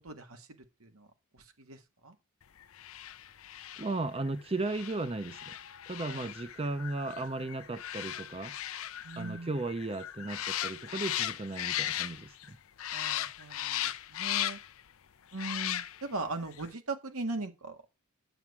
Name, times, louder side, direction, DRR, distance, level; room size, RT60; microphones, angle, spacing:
voice 1, 0.0-0.5 0.8-1.1 1.3-2.2 6.1-6.3 9.0-9.6 12.9-14.6 15.3-17.9, right 3 dB, 90° right, 1.8 m, -39 dB
sound 1, 2.7-12.5 12.8-14.8 15.3-16.2 16.5-16.7, left 12 dB, 75° left, 0.6 m, -37 dB
voice 2, 3.8-5.6 5.9-8.5 9.2-12.6, right 2 dB, 25° right, 0.7 m, -35 dB
9.1 x 7.1 x 4.7 m
head